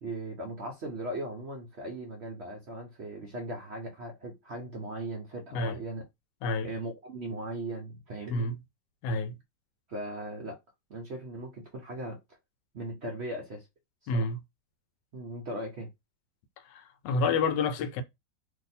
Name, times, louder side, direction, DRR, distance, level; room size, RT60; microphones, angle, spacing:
voice 1, 0.0-6.0 6.6-8.5 9.9-10.6 10.9-12.2 12.7-13.7 14.1-14.3 15.1-15.9, right 1 dB, 55° right, 0.7 m, -38 dB
voice 2, 9.0-9.3 14.1-14.4 16.6-18.0, left 3 dB, 80° left, 1.2 m, -29 dB
2.6 x 2.6 x 4.1 m
omnidirectional pair, 1.9 m